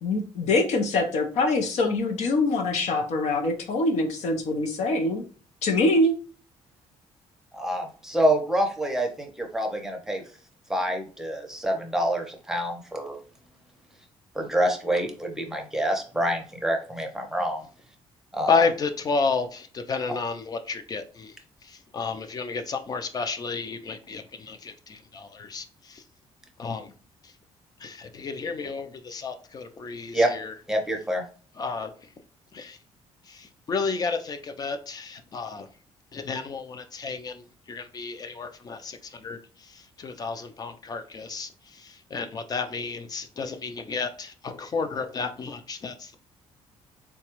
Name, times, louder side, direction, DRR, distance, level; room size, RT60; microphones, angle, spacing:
voice 1, 0.0-5.2 5.6-6.1, left 2 dB, 75° left, 0.7 m, -24 dB
voice 2, 7.5-10.2 10.7-13.2 14.3-17.6 18.3-18.6 30.1-30.4 30.7-31.2, right 1 dB, 5° right, 0.7 m, -26 dB
voice 3, 18.5-21.3 21.6-26.0 26.6-26.9 27.8-30.5 31.6-31.9 32.5-32.8 33.3-35.7 36.1-39.4 39.7-46.2, left 4 dB, 35° left, 0.4 m, -31 dB
3.9 x 2.2 x 3.0 m
cardioid pair, 130°, 12 cm